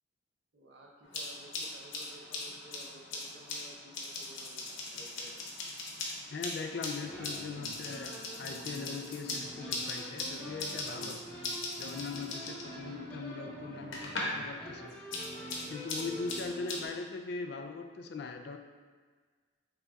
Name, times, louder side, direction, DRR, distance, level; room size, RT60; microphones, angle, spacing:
voice 1, 0.5-5.4, right 1 dB, 65° right, 0 dB, 0.7 m, -55 dB
sound 1, 1.0-14.5 14.7-16.8, left 2 dB, 90° left, 0.9 m, -40 dB
voice 2, 6.3-11.2 11.8-15.0 15.7-18.6, left 4 dB, 60° left, 6 dB, 0.4 m, -40 dB
sound 2, 7.0-16.9, right 1 dB, 10° left, 1.0 m, -46 dB
5.7 x 3.9 x 2.3 m, 1.5 s
head